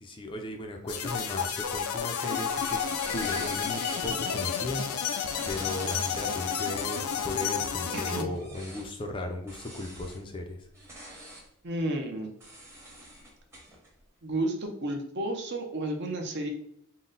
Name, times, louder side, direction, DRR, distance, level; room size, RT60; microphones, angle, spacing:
voice 1, 0.0-2.8 3.1-4.8 5.1-10.6, left 2 dB, 25° left, 3 dB, 0.4 m, -36 dB
sound 1, 0.9-8.2, left 7 dB, 85° left, 0.5 m, -31 dB
sound 2, 0.9-1.8 2.2-4.2 5.2-7.2 8.3-8.9 9.5-10.2 10.7-11.5 12.4-13.9, right 1 dB, 10° right, 0.8 m, -44 dB
voice 2, 7.9-8.4 11.6-12.3 14.2-16.5, right 1 dB, 50° right, 3 dB, 0.7 m, -32 dB
3.9 x 2.1 x 3.8 m, 0.71 s
head